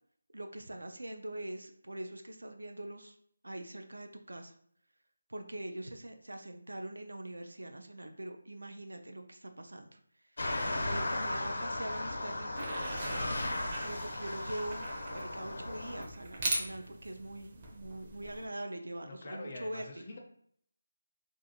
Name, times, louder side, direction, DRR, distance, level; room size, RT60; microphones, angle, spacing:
voice 1, 0.3-3.2 3.4-4.5 5.3-10.0 10.7-12.8 13.8-20.0, right 1 dB, 85° right, 5 dB, 0.4 m, -43 dB
sound 1, 10.4-16.0, left 1 dB, 65° left, 0.7 m, -36 dB
sound 2, 12.6-18.5, right 2 dB, 30° right, 0.5 m, -40 dB
voice 2, 19.0-20.2, left 2 dB, 35° left, 0 dB, 0.5 m, -45 dB
2.5 x 2.4 x 2.8 m, 0.63 s
figure-of-eight pair, 165°, 0 cm